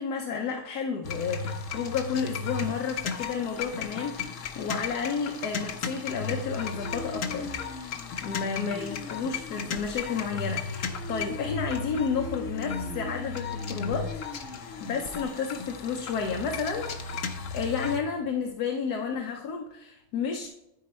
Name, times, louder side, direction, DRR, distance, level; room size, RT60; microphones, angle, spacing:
voice 1, 0.0-7.5 8.2-14.2 14.5-16.9 17.3-20.5, left 6 dB, 85° left, 2 dB, 1.4 m, -31 dB
sound 1, 1.0-18.0, left 5 dB, 60° left, 1.1 m, -35 dB
12.5 x 4.7 x 4.3 m, 0.86 s
omnidirectional pair, 1.6 m